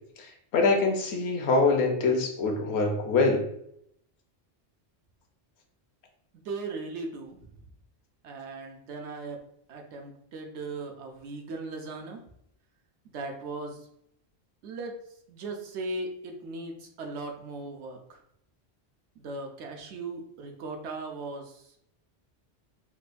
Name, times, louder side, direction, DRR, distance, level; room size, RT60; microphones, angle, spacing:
voice 1, 0.2-3.4, left 3 dB, 70° left, 3 dB, 0.9 m, -24 dB
voice 2, 6.4-7.4 8.2-9.4 9.7-12.2 13.1-13.8 14.6-14.9 15.3-18.0 19.2-21.6, right 3 dB, 80° right, 2 dB, 0.9 m, -38 dB
4.2 x 2.2 x 2.5 m, 0.72 s
omnidirectional pair, 1.2 m